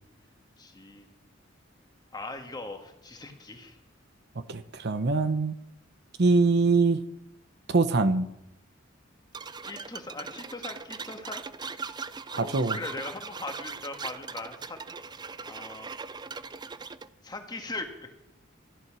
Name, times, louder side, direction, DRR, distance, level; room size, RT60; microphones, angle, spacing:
voice 1, 0.6-1.1 2.1-3.8 9.6-14.9 15.4-15.9 17.2-18.1, left 2 dB, 20° left, 5 dB, 1.7 m, -40 dB
voice 2, 4.4-5.5 6.2-7.0 7.7-8.3 12.3-12.8, right 3 dB, 55° right, 11 dB, 0.8 m, -23 dB
sound 1, 9.3-17.1, right 5 dB, 20° right, 0.4 m, -39 dB
15.0 x 11.0 x 6.1 m, 0.83 s
head